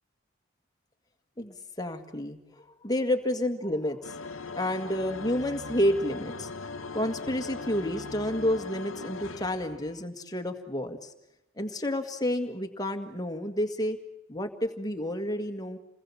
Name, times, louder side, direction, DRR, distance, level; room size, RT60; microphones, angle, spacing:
voice 1, 1.4-6.5 6.8-11.1 11.6-14.0 14.3-15.8, left 1 dB, 20° left, 6 dB, 1.9 m, -30 dB
sound 1, 4.0-10.0, left 3 dB, 80° left, 1.2 m, -40 dB
28.5 x 20.5 x 7.2 m, 0.93 s
head